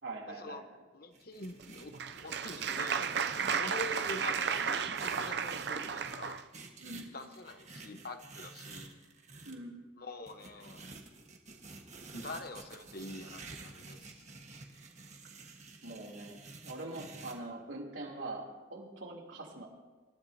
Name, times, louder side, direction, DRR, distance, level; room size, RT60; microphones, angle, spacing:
voice 1, 0.0-0.7 6.8-7.1 9.4-9.8 15.8-16.4 16.6-19.7, right 2 dB, 75° right, -1 dB, 3.3 m, -43 dB
voice 2, 0.9-6.4 7.1-9.0 10.0-10.8 12.1-14.2, left 2 dB, 50° left, 7 dB, 1.1 m, -45 dB
sound 1, 1.1-9.6 10.3-17.3, right 3 dB, 35° right, 1.5 m, -51 dB
Applause, 1.6-6.4, right 6 dB, 55° right, 0.5 m, -34 dB
27.0 x 13.5 x 2.9 m, 1.3 s
head